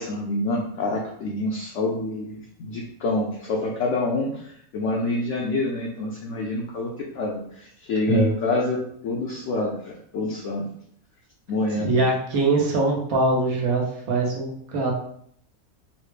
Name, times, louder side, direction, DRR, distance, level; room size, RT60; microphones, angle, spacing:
voice 1, 0.0-8.8 9.0-10.6 11.5-11.9, left 2 dB, 65° left, -1 dB, 0.8 m, -27 dB
voice 2, 11.8-14.9, right 2 dB, 75° right, 0 dB, 1.2 m, -22 dB
4.0 x 2.0 x 3.2 m, 0.66 s
omnidirectional pair, 1.5 m